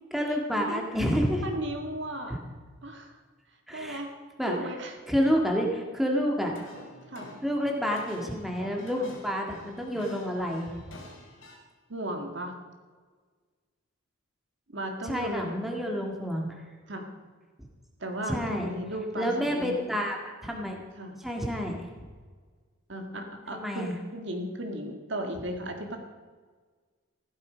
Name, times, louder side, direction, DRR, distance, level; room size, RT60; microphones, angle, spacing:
voice 1, 0.1-1.4 2.3-2.4 3.7-4.0 4.4-4.7 5.1-6.6 7.4-10.7 15.0-16.5 18.3-18.7 19.2-20.8 21.2-21.8 23.5-24.0, equal, ahead, 0 dB, 2.0 m, -29 dB
voice 2, 1.4-2.4 2.8-3.1 3.7-4.1 4.5-4.9 7.1-7.3 9.0-9.1 11.9-12.5 14.7-15.7 16.9-17.1 18.0-19.8 21.0-21.2 22.9-26.0, right 1 dB, 55° right, 4 dB, 1.9 m, -35 dB
sound 1, 6.5-11.6, left 1 dB, 65° left, 3.4 m, -48 dB
15.5 x 12.5 x 5.1 m, 1.5 s
head